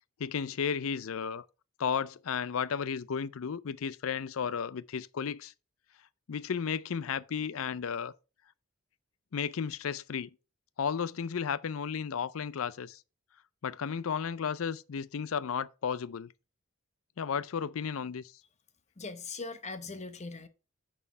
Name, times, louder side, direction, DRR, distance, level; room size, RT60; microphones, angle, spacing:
voice 1, 0.2-1.4 1.8-5.5 6.3-8.1 9.3-10.3 10.8-13.0 13.6-16.3 17.2-18.3, left 6 dB, 75° left, 0.5 m, -33 dB
voice 2, 19.0-20.5, left 3 dB, 30° left, 0.8 m, -40 dB
8.7 x 4.4 x 5.6 m
head